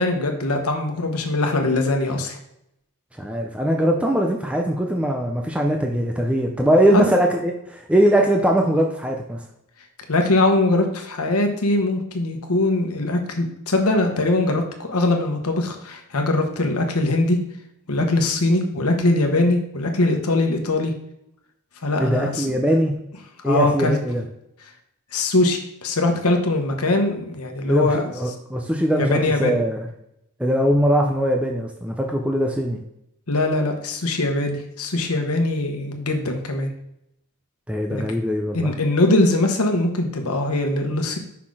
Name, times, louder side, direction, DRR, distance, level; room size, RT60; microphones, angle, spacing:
voice 1, 0.0-2.4 6.9-7.1 10.1-17.4 17.9-20.9 21.8-22.5 23.4-24.0 25.1-28.1 28.9-29.6 33.3-36.7 37.9-38.0 38.5-41.2, left 2 dB, 80° left, 4 dB, 1.1 m, -21 dB
voice 2, 3.2-9.4 22.0-23.0 23.4-24.2 27.7-29.9 30.4-32.8 37.7-38.7, equal, 5° right, 2 dB, 0.5 m, -21 dB
5.8 x 4.2 x 4.8 m, 0.80 s
head